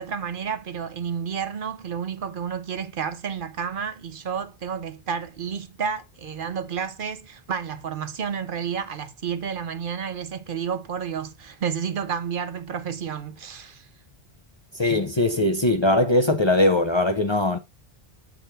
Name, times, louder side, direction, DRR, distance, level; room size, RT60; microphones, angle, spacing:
voice 1, 0.0-13.9, right 7 dB, 60° right, 0.9 m, -31 dB
voice 2, 14.8-17.6, left 2 dB, 35° left, 0.5 m, -20 dB
8.0 x 3.7 x 4.3 m
omnidirectional pair, 1.0 m